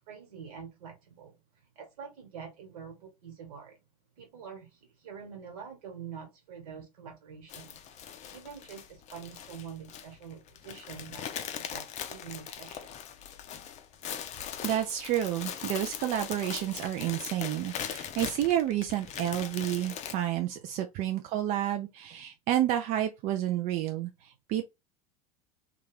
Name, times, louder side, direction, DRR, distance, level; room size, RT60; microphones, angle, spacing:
voice 1, 0.1-1.3 1.7-3.8 4.2-12.9, right 7 dB, 65° right, 1.3 m, -46 dB
sound 1, 7.5-20.1, left 9 dB, 35° left, 0.5 m, -40 dB
voice 2, 14.6-24.6, right 12 dB, 40° right, 0.4 m, -30 dB
2.3 x 2.3 x 3.2 m
hypercardioid pair, 80°, 20 cm